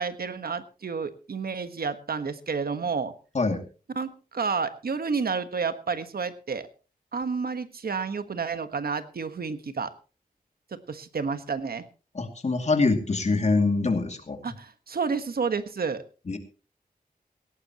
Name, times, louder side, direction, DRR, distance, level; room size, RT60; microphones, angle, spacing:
voice 1, 0.0-3.1 3.9-6.7 7.1-9.9 10.7-11.8 14.4-16.0, right 5 dB, 80° right, 10 dB, 1.4 m, -30 dB
voice 2, 12.1-14.4 16.3-16.4, left 3 dB, 50° left, 6 dB, 2.5 m, -24 dB
17.5 x 17.5 x 3.0 m, 0.34 s
wide cardioid pair, 110°, 15 cm